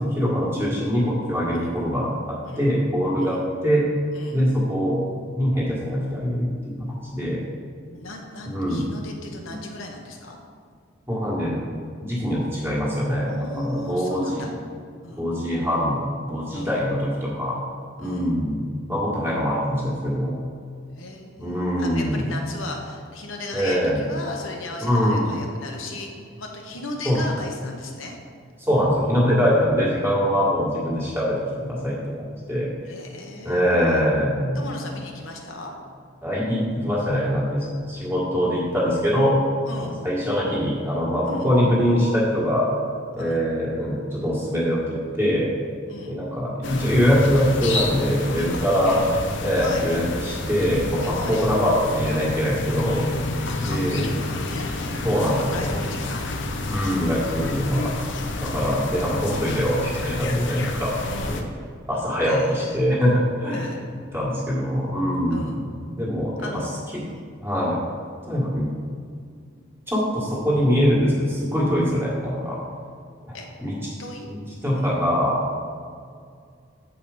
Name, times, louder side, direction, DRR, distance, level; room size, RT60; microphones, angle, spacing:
voice 1, 0.0-2.1 2.6-3.8 4.3-6.8 7.0-7.4 8.5-8.8 11.1-13.3 13.6-14.5 15.2-17.6 18.0-20.3 21.4-22.3 23.5-24.0 24.8-25.3 27.0-27.2 28.6-32.7 33.4-34.6 36.2-39.3 39.8-42.7 43.1-45.5 46.0-48.9 49.4-53.0 53.6-54.0 55.0-55.7 56.7-57.9 58.4-60.9 61.3-61.4 61.9-63.6 64.1-66.5 67.4-67.8 68.3-68.7 69.9-72.6 73.3-73.8 74.6-75.4, equal, 10° right, -6 dB, 1.8 m, -23 dB
voice 2, 2.4-2.8 3.2-3.5 4.1-4.4 7.9-10.4 13.3-14.5 15.0-15.2 16.5-16.7 18.0-18.3 21.0-26.1 26.4-28.2 32.8-33.6 33.9-34.1 34.5-35.7 39.6-40.0 41.2-41.5 43.2-43.4 45.9-46.2 49.5-49.9 51.1-51.4 53.5-55.1 55.4-56.7 58.3-58.6 61.1-61.4 62.2-62.8 63.5-63.8 65.3-65.6 66.4-66.7 67.0-67.3 73.3-73.5 74.0-74.3 74.7-74.9, left 2 dB, 75° left, 1 dB, 1.0 m, -37 dB
sound 1, 46.6-61.4, left 2 dB, 60° left, 0.7 m, -29 dB
7.9 x 4.9 x 5.0 m, 2.2 s
head